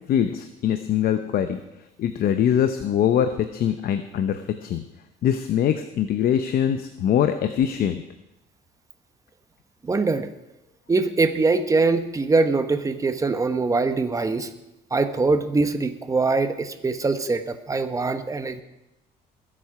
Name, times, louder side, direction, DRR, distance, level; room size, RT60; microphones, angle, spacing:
voice 1, 0.1-1.6 2.0-4.8 5.2-8.0, left 9 dB, 60° left, 9 dB, 0.8 m, -23 dB
voice 2, 9.8-10.3 10.9-14.5 14.9-18.6, right 3 dB, 20° right, 8 dB, 1.1 m, -23 dB
21.0 x 7.7 x 4.9 m, 0.91 s
cardioid pair, 110°, 17 cm